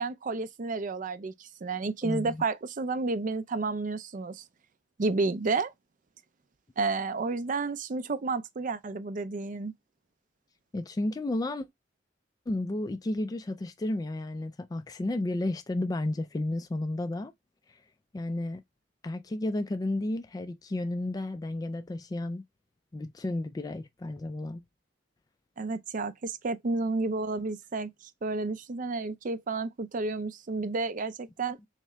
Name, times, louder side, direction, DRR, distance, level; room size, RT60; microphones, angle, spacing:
voice 1, 0.0-4.4 5.0-5.7 6.8-9.7 25.6-31.6, right 3 dB, 45° right, 0.5 m, -31 dB
voice 2, 2.0-2.4 10.7-11.7 12.5-17.3 17.7-17.8 18.1-18.6 19.0-22.4 22.9-24.6, left 1 dB, 20° left, 0.3 m, -32 dB
3.6 x 3.3 x 3.0 m
head